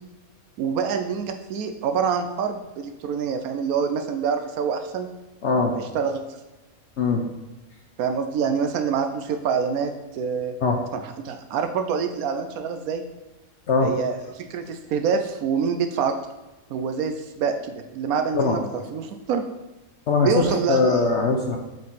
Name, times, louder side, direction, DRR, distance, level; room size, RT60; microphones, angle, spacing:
voice 1, 0.6-5.1 5.7-6.2 8.0-10.5 10.9-13.0 13.8-16.1 16.7-18.6 18.9-19.4 20.2-20.9, right 6 dB, 80° right, 7 dB, 1.1 m, -26 dB
voice 2, 5.4-5.8 7.0-7.2 10.6-10.8 13.7-14.0 18.3-18.6 20.1-21.6, left 4 dB, 60° left, 2 dB, 1.0 m, -21 dB
7.3 x 4.6 x 4.0 m, 1.1 s
omnidirectional pair, 1.5 m